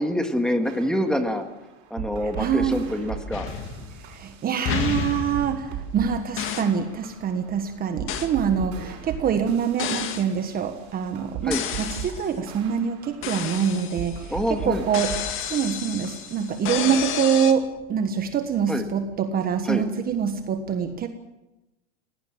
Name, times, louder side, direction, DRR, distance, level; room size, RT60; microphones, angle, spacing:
voice 1, 0.0-1.4 1.9-3.5 8.5-8.9 11.4-11.6 14.3-14.9 18.7-18.9 19.7-19.8, equal, ahead, 6 dB, 1.9 m, -26 dB
sound 1, 0.6-17.3, right 8 dB, 50° right, 6.8 m, -39 dB
voice 2, 2.4-2.8 4.1-15.1 15.4-21.1, right 7 dB, 25° right, 7 dB, 1.4 m, -25 dB
sound 2, 3.3-4.3 4.7-6.0 6.4-6.8 8.1-8.4 9.8-10.3 11.5-12.3 13.2-14.3 14.9-17.5, left 8 dB, 35° left, 2.1 m, -31 dB
20.5 x 17.5 x 7.7 m, 0.97 s
supercardioid pair, 140°, 35 cm